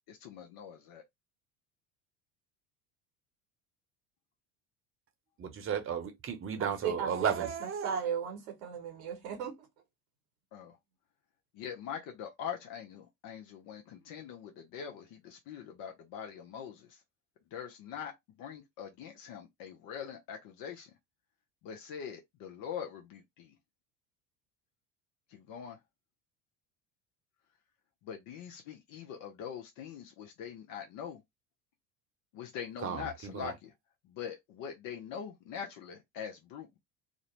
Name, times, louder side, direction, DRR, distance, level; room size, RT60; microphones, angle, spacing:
voice 1, 0.1-1.0 10.5-10.7 11.6-16.9 17.5-18.1 18.4-20.9 21.6-23.5 25.3-25.8 28.0-31.2 32.3-33.5 34.1-36.8, left 8 dB, 50° left, 0.7 m, -43 dB
voice 2, 5.4-8.0 32.8-33.6, right 7 dB, 30° right, 0.8 m, -34 dB
voice 3, 6.6-7.1 7.8-9.5, right 7 dB, 75° right, 0.9 m, -36 dB
2.5 x 2.1 x 3.0 m
hypercardioid pair, 70°, 42 cm